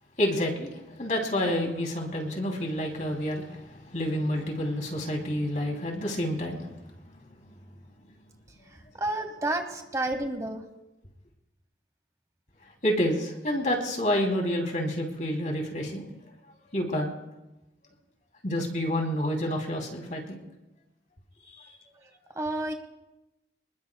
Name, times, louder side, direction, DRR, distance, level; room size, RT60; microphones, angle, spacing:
voice 1, 0.2-6.7 7.4-7.5 12.8-16.1 16.7-17.1 18.4-20.4 21.5-21.7, equal, 45° left, 1 dB, 2.9 m, -29 dB
voice 2, 8.7-10.6 22.3-22.7, right 2 dB, 20° right, 5 dB, 1.0 m, -30 dB
26.0 x 20.5 x 2.3 m, 0.98 s
head